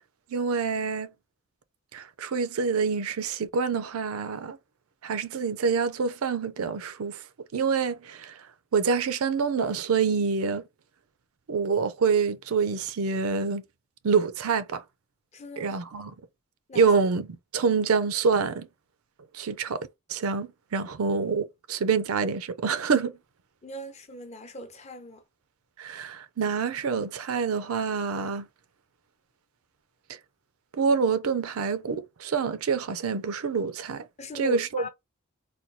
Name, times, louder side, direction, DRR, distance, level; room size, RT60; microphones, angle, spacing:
voice 1, 0.3-1.1 1.9-4.6 5.0-7.2 7.5-8.3 8.7-10.6 11.5-13.6 14.0-14.8 15.6-16.1 16.7-18.7 19.3-19.8 20.1-23.1 25.8-28.5 30.8-34.0 34.3-34.8, right 5 dB, 75° right, 0.5 m, -26 dB
voice 2, 15.3-15.8 16.7-16.9 23.6-25.2 34.2-34.9, equal, 30° left, 0.6 m, -39 dB
4.2 x 2.3 x 2.7 m
head